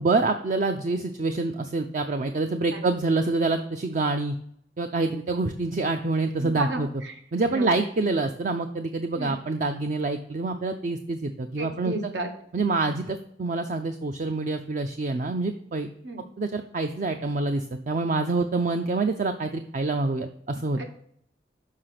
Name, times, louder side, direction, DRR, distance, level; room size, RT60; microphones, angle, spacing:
voice 1, 0.0-4.4 4.8-6.9 7.3-11.9 12.5-15.9 16.4-20.9, right 3 dB, 45° right, 7 dB, 0.4 m, -26 dB
voice 2, 6.4-7.2 7.5-7.7 9.1-9.4 11.6-12.3 16.0-16.3 20.8-20.9, right 2 dB, 80° right, 5 dB, 1.2 m, -32 dB
6.5 x 4.7 x 5.8 m, 0.66 s
head